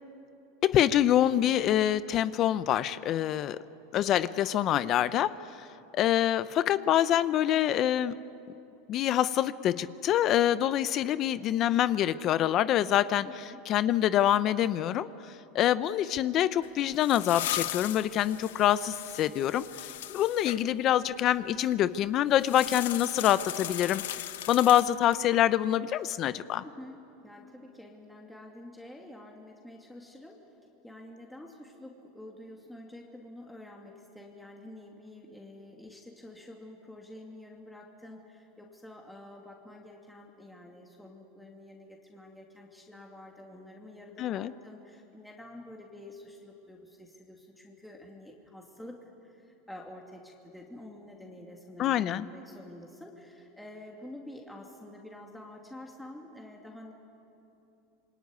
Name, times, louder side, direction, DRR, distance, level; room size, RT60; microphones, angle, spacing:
voice 1, 0.6-3.6 3.9-5.3 5.6-5.7 5.9-8.1 8.9-13.3 13.7-15.1 15.5-24.0 24.5-26.6 44.2-44.5 51.8-52.2, left 11 dB, 40° left, 14 dB, 0.7 m, -25 dB
voice 2, 13.2-13.6 26.6-56.9, left 1 dB, 5° left, -1 dB, 2.6 m, -48 dB
sound 1, 16.6-20.6 22.3-25.3, left 13 dB, 85° left, 0.9 m, -38 dB
27.0 x 23.0 x 9.6 m, 2.8 s
supercardioid pair, 125°, 0 cm